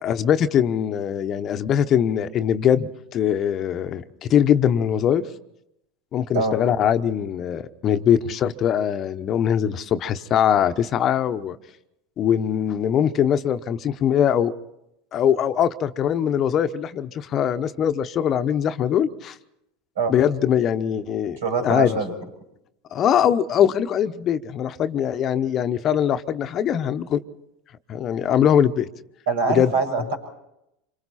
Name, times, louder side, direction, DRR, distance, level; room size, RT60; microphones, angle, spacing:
voice 1, 0.0-5.3 6.1-11.6 12.2-14.5 15.1-19.4 20.1-21.4 21.6-22.0 22.9-27.2 27.9-28.9 29.5-29.7, left 9 dB, 40° left, 11 dB, 1.0 m, -22 dB
voice 2, 21.4-22.1 29.3-30.2, right 4 dB, 80° right, 2 dB, 6.6 m, -24 dB
26.5 x 25.0 x 4.3 m, 0.84 s
hypercardioid pair, 95°, 0 cm